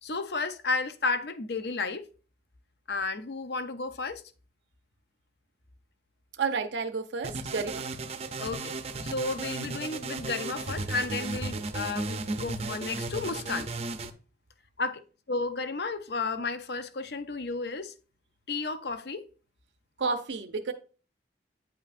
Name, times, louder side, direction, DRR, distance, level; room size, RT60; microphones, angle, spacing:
voice 1, 0.0-2.1 2.9-4.2 8.4-8.8 9.0-13.7 14.8-15.0 15.3-17.9 18.5-19.3, left 3 dB, 60° left, 0.6 m, -32 dB
voice 2, 6.4-7.8 20.0-20.7, right 5 dB, 80° right, 0.6 m, -31 dB
sound 1, 7.2-14.1, right 3 dB, 35° right, 0.5 m, -35 dB
9.3 x 5.6 x 2.5 m
head